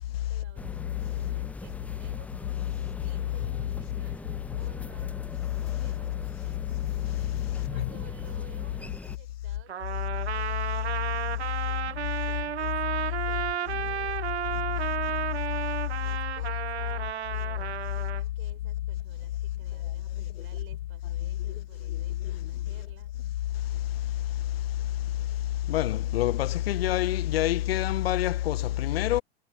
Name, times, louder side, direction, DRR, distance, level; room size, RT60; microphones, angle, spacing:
voice 1, 0.3-5.4 5.8-6.8 7.5-23.1, right 16 dB, 40° right, 4.6 m, -56 dB
sound 1, 0.6-9.2, left 3 dB, 5° left, 0.4 m, -41 dB
Trumpet, 9.7-18.2, right 9 dB, 75° right, 0.9 m, -32 dB
voice 2, 25.7-29.2, left 14 dB, 65° left, 1.0 m, -26 dB
figure-of-eight pair, 90°, 33 cm